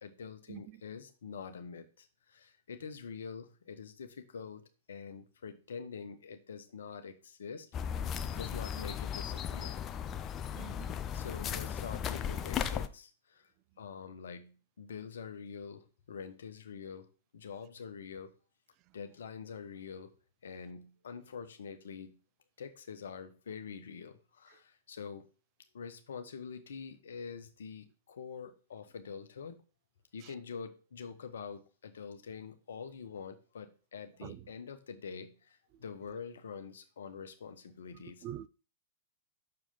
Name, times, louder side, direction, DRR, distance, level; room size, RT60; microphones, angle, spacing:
voice 1, 0.0-4.6 4.9-7.7 8.4-9.8 11.1-13.5 13.8-17.1 17.3-18.3 18.9-20.1 20.4-22.2 22.6-25.3 25.7-29.6 30.1-38.2, left 6 dB, 70° left, 1.1 m, -45 dB
sound 1, 7.7-12.9, left 8 dB, 30° left, 0.6 m, -36 dB
voice 2, 10.5-11.0 30.2-30.3 34.2-34.4 35.7-35.8 38.2-38.5, right 13 dB, 40° right, 0.4 m, -44 dB
6.6 x 4.8 x 5.6 m
figure-of-eight pair, 105°, 0 cm